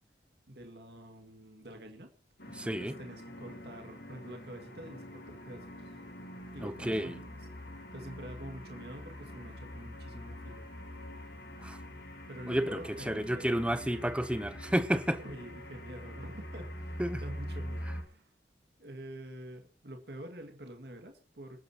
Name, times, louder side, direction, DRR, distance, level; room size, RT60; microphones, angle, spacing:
voice 1, 0.5-2.1 2.4-5.9 6.5-7.0 7.3-7.4 7.9-10.6 12.3-13.7 15.2-18.3 18.8-21.6, right 1 dB, 65° right, 2.2 m, -47 dB
sound 1, 2.4-18.0, equal, 60° left, 3.5 m, -44 dB
voice 2, 2.5-2.9 6.6-7.2 11.6-11.8 12.5-15.2 17.0-17.2, equal, 5° right, 0.8 m, -31 dB
27.0 x 9.4 x 3.0 m
head